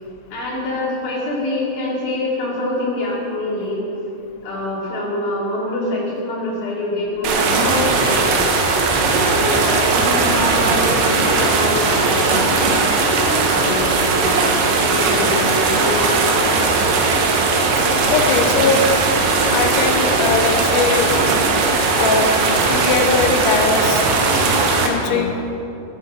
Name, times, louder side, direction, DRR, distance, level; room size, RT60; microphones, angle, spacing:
voice 1, 0.3-3.8 4.4-8.4 9.2-12.5 13.4-13.9 14.1-14.5 14.8-16.2 16.5-16.7 25.0-25.2, left 2 dB, 55° left, -6 dB, 5.2 m, -25 dB
sound 1, 7.2-24.9, right 3 dB, 80° right, 3.8 m, -18 dB
voice 2, 18.1-18.9 19.5-21.1 22.0-24.0 24.8-25.3, left 5 dB, 80° left, 4 dB, 1.9 m, -20 dB
14.5 x 13.0 x 5.6 m, 2.7 s
omnidirectional pair, 5.1 m